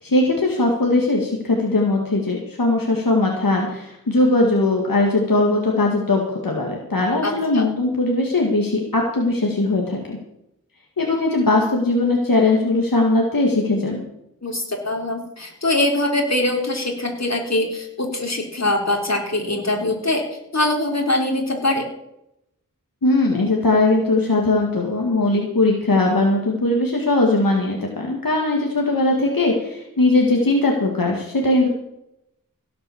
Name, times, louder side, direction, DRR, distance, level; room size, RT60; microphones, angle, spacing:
voice 1, 0.0-10.2 11.0-14.0 23.0-31.7, left 2 dB, 75° left, 0 dB, 2.2 m, -19 dB
voice 2, 7.2-7.7 14.4-21.9, left 1 dB, 50° left, 1 dB, 3.6 m, -23 dB
17.0 x 7.7 x 7.2 m, 0.81 s
wide cardioid pair, 50°, 34 cm